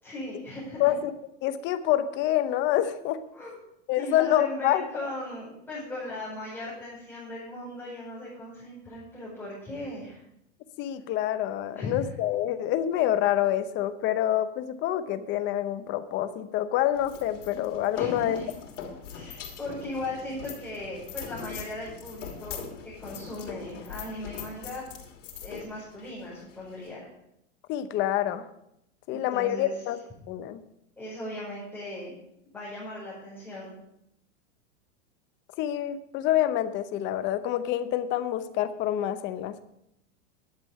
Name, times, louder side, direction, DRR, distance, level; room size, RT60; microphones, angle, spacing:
voice 1, 0.0-0.9 3.3-3.6 4.0-10.2 11.7-12.0 17.9-18.4 19.1-24.8 25.4-27.1 29.3-29.7 31.0-32.1 32.5-33.7, left 1 dB, 5° left, -10 dB, 5.2 m, -38 dB
voice 2, 0.8-1.1 1.4-3.2 3.9-5.1 10.8-18.4 27.7-28.5 29.1-30.0 30.3-30.6 35.6-39.6, left 12 dB, 30° left, 11 dB, 0.8 m, -27 dB
sound 1, 16.9-26.9, left 7 dB, 80° left, 3.1 m, -41 dB
11.5 x 8.1 x 5.6 m, 0.78 s
supercardioid pair, 150°, 37 cm